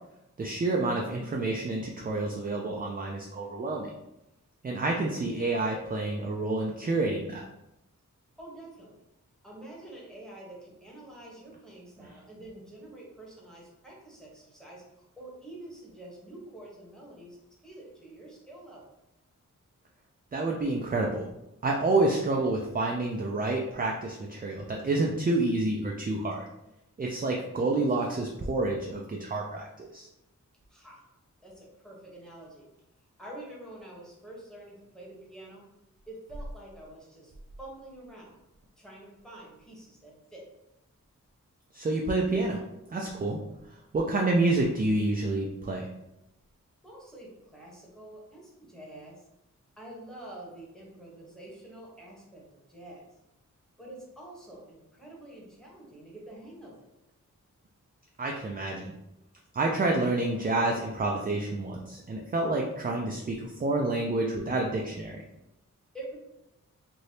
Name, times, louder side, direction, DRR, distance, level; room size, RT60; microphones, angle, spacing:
voice 1, 0.4-3.9 4.6-7.5 20.3-21.3 21.6-26.5 27.0-30.1 41.7-42.6 42.9-43.4 43.9-45.9 58.2-58.9 59.5-65.2, right 2 dB, 30° right, 0 dB, 0.4 m, -28 dB
voice 2, 8.4-9.0 9.4-17.4 17.6-18.9 30.7-31.0 31.4-32.7 33.2-35.6 36.1-37.3 37.6-38.3 38.8-40.5 46.8-49.2 49.8-53.0 53.8-56.8 65.9-66.2, right 1 dB, ahead, -4 dB, 1.0 m, -47 dB
3.2 x 2.6 x 2.7 m, 0.88 s
wide cardioid pair, 85°, 32 cm